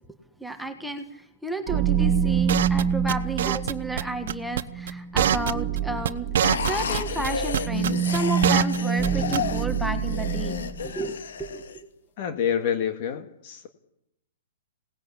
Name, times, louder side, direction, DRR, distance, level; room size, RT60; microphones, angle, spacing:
voice 1, 0.4-10.5 10.8-11.7, right 1 dB, ahead, 5 dB, 1.5 m, -32 dB
sound 1, 1.7-10.8, right 7 dB, 25° right, 2.0 m, -27 dB
sound 2, 2.5-2.8 3.1-3.7 4.0-4.1 4.3-4.9 5.2-5.8 6.0-7.0 7.2-8.8 9.0-9.1 9.3-9.6, right 10 dB, 60° right, 1.0 m, -24 dB
sound 3, 6.4-11.8, left 6 dB, 75° left, 2.6 m, -32 dB
voice 2, 12.2-13.7, left 8 dB, 35° left, 7 dB, 1.9 m, -27 dB
27.0 x 19.0 x 8.5 m, 0.80 s
hypercardioid pair, 165°, 0 cm